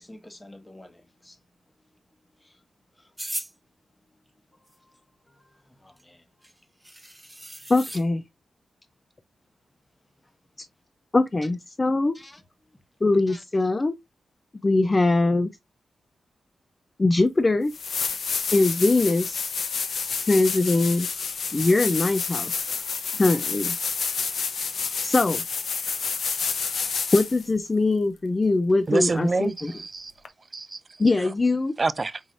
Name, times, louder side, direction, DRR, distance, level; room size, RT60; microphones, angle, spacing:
voice 1, 0.0-1.4 1.8-2.6 3.0-3.1 4.1-4.2 4.7-5.0 5.3-6.2 12.1-12.8 13.3-13.8, left 1 dB, 20° left, 1.1 m, -51 dB
sound 1, 3.2-3.5 6.0-6.1 6.4-6.5 6.8-8.0, right 1 dB, 10° right, 0.9 m, -36 dB
voice 2, 7.7-8.2 11.1-12.1 13.0-13.9 14.6-15.5 17.0-17.7 18.5-19.4 20.2-21.1 21.5-22.7 23.2-23.8 25.0-25.4 27.1-29.8 31.0-31.7, left 2 dB, 35° left, 0.5 m, -22 dB
sound 2, 17.2-17.3 17.7-27.5 30.2-30.3, left 5 dB, 75° left, 0.7 m, -29 dB
voice 3, 28.9-30.1 30.5-31.3 31.8-32.2, right 3 dB, 45° right, 0.3 m, -27 dB
5.4 x 3.1 x 2.5 m
supercardioid pair, 45°, 0 cm